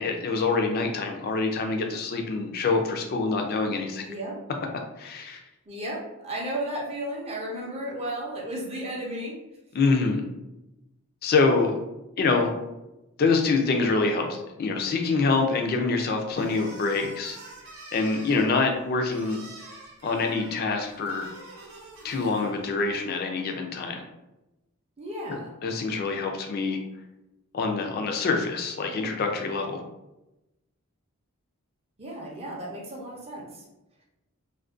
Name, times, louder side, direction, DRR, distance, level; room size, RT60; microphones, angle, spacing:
voice 1, 0.0-4.0 5.0-5.4 9.7-10.2 11.2-11.8 12.2-12.5 13.2-17.4 17.9-19.4 20.0-21.3 22.0-24.0 25.3-26.8 27.5-29.8, left 4 dB, 45° left, 4 dB, 0.3 m, -25 dB
voice 2, 4.0-4.4 5.7-9.4 25.0-25.6 32.0-33.6, right 1 dB, 30° right, -3 dB, 0.5 m, -34 dB
sound 1, 16.3-22.9, right 2 dB, 70° right, 0.6 m, -46 dB
2.4 x 2.1 x 2.4 m, 0.97 s
head